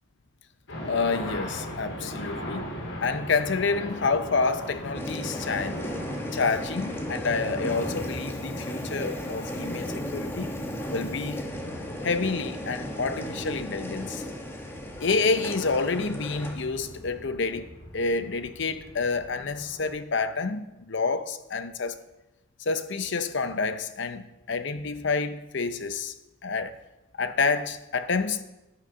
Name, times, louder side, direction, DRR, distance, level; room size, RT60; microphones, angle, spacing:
sound 1, 0.7-19.9, equal, 85° left, 4.7 m, -40 dB
voice 1, 0.8-2.7 3.0-5.8 6.3-10.6 10.9-11.4 12.0-14.2 15.0-17.7 17.9-22.0 22.6-26.1 26.4-26.8 27.2-28.4, left 4 dB, 60° left, 0.8 m, -28 dB
sound 2, 4.9-16.6, left 1 dB, 10° left, 1.2 m, -36 dB
11.5 x 8.2 x 5.6 m
head